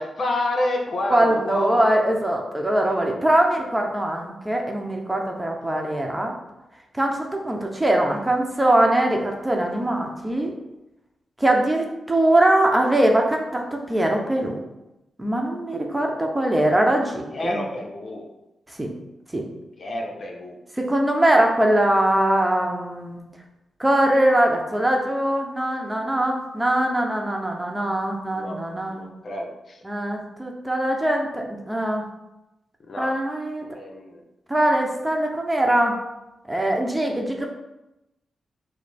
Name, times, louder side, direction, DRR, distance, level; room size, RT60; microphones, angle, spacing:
voice 1, 0.0-1.8 17.3-18.3 19.8-20.6 28.3-29.8 32.9-33.1 33.6-34.2, left 1 dB, 60° left, 1 dB, 0.7 m, -29 dB
voice 2, 1.1-6.3 6.9-10.5 11.4-14.6 15.2-17.6 18.7-18.9 19.3-19.5 20.8-23.2 23.8-29.0 29.8-32.0 33.0-33.6 34.5-36.0 36.5-37.5, right 1 dB, 15° right, 1 dB, 0.8 m, -22 dB
5.1 x 2.1 x 4.2 m, 0.95 s
cardioid pair, 60°, 0 cm